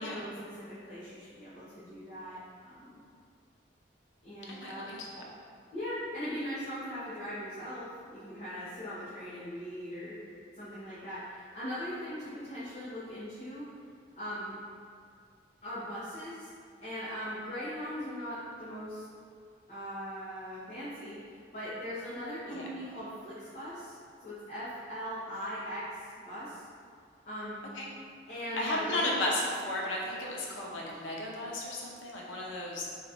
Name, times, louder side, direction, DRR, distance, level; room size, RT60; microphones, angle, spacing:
voice 1, 0.0-3.0 4.2-5.0 5.7-10.2 10.5-13.7 14.2-14.5 15.6-16.5 16.8-19.0 19.7-21.2 21.5-26.7 27.3-27.6 28.3-29.2, equal, 35° left, -13 dB, 0.9 m, -40 dB
voice 2, 4.5-5.2 22.5-22.7 27.8-27.9 28.5-32.8, left 1 dB, 90° left, -3 dB, 0.8 m, -34 dB
4.0 x 2.4 x 4.2 m, 2.2 s
head